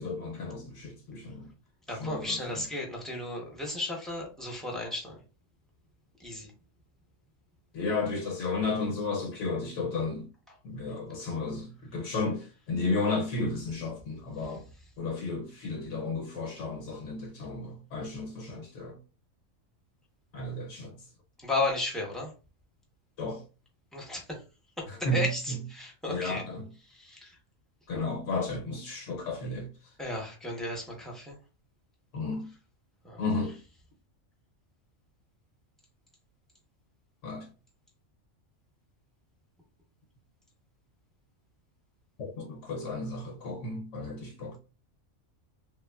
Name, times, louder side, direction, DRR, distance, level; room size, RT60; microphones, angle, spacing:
voice 1, 0.0-1.5 1.9-2.6 7.7-10.3 10.6-14.6 15.0-18.9 20.3-20.9 23.2-23.4 24.9-25.6 26.1-26.7 27.9-29.7 32.1-32.5 33.2-33.5 37.2-37.5 42.2-44.6, left 3 dB, 75° left, 1.0 m, -33 dB
voice 2, 1.9-5.2 6.2-6.5 21.4-22.3 23.9-24.2 25.1-26.4 27.0-27.3 30.0-31.4 33.0-33.2, left 2 dB, ahead, 0.5 m, -34 dB
3.2 x 2.3 x 2.2 m
omnidirectional pair, 1.3 m